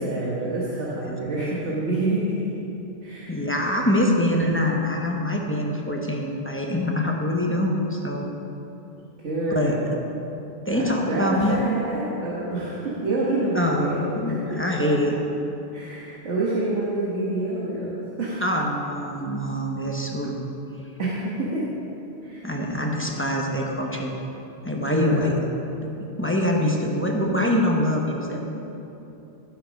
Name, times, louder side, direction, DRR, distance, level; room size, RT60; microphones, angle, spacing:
voice 1, 0.0-2.5 3.0-3.4 9.2-9.9 10.7-14.4 15.7-18.4 21.0-21.6 22.2-22.5 24.8-25.4, right 2 dB, 85° right, -7 dB, 1.7 m, -27 dB
voice 2, 1.0-1.8 3.3-8.3 9.5-9.8 10.6-11.6 13.5-15.1 18.4-20.3 22.4-24.1 24.6-25.3 25.8-28.6, left 1 dB, 10° left, -1 dB, 1.0 m, -24 dB
13.0 x 6.9 x 5.2 m, 3.0 s
omnidirectional pair, 1.2 m